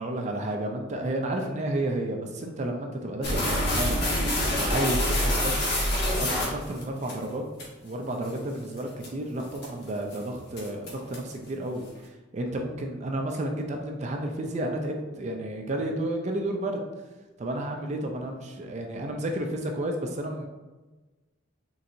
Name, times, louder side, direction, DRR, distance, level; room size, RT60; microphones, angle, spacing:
voice 1, 0.0-5.8 6.2-7.4 7.8-16.8 17.4-20.5, right 1 dB, 35° right, 3 dB, 0.4 m, -31 dB
sound 1, 3.2-7.1 7.6-7.7 8.2-8.4 8.8-9.1 9.5-9.8 10.1-10.2 10.6-11.3, left 1 dB, 50° left, 1.2 m, -26 dB
4.3 x 3.8 x 2.6 m, 1.2 s
head